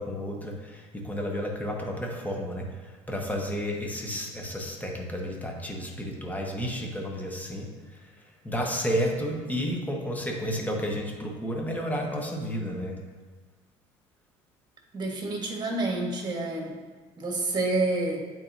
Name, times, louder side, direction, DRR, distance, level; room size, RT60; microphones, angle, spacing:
voice 1, 0.0-13.0, equal, 10° left, 0 dB, 1.4 m, -32 dB
voice 2, 14.9-16.7 17.2-18.2, right 2 dB, 30° right, 0 dB, 1.8 m, -28 dB
8.4 x 4.5 x 2.9 m, 1.4 s
hypercardioid pair, 65°, 15 cm